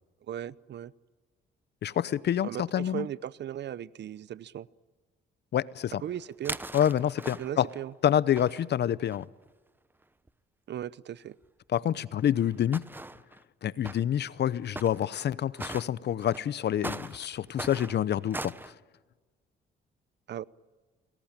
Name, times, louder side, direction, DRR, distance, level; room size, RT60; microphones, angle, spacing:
voice 1, 0.3-0.9 2.4-4.7 6.0-6.6 7.4-7.9 10.7-11.4 20.3-20.4, right 10 dB, 60° right, 0.8 m, -37 dB
voice 2, 1.8-3.1 5.5-6.0 6.7-7.7 8.0-9.3 11.7-12.8 13.6-18.7, left 10 dB, 60° left, 0.8 m, -27 dB
sound 1, 6.1-7.8 8.4-9.3 10.0-10.1 10.3-10.4 11.4-11.5 12.2-13.4 13.8-14.0 14.8-15.2 15.5-15.8 16.2-18.7, right 2 dB, 10° right, 0.9 m, -40 dB
29.5 x 20.5 x 8.9 m
cardioid pair, 90°, 20 cm